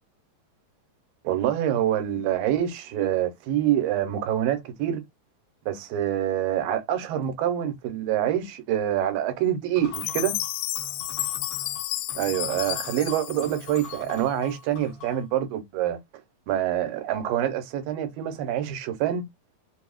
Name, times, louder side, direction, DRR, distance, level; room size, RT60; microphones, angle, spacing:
voice 1, 1.2-5.0 5.7-10.4 12.1-16.0 16.5-19.2, right 11 dB, 80° right, 2.5 m, -26 dB
sound 1, 9.8-15.3, left 3 dB, 65° left, 1.5 m, -43 dB
Chime, 9.9-14.3, left 16 dB, 85° left, 2.4 m, -32 dB
6.1 x 2.3 x 2.3 m
omnidirectional pair, 4.3 m